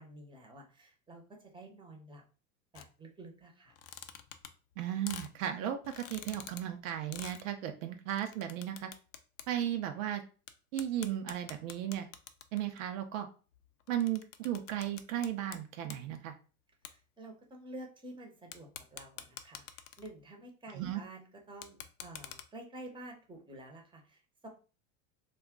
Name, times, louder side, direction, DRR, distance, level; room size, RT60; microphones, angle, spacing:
voice 1, 0.0-2.2 2.7-3.7 16.9-24.5, right 1 dB, 10° right, 2 dB, 0.8 m, -50 dB
sound 1, 2.8-2.9 3.7-4.7 5.1-5.3 5.8-6.6 7.1-7.4 8.1-9.4 9.8-9.9 10.5-10.6 10.8-12.8 13.5-15.6 15.8-16.0 16.8-16.9 18.5-20.2 21.5-22.4, left 10 dB, 70° left, 0.5 m, -46 dB
voice 2, 4.8-8.9 9.5-10.2 10.7-12.1 12.5-13.3 13.9-16.3 20.7-21.0, right 11 dB, 75° right, 6 dB, 0.6 m, -35 dB
2.4 x 2.2 x 3.6 m, 0.36 s
hypercardioid pair, 95°, 40 cm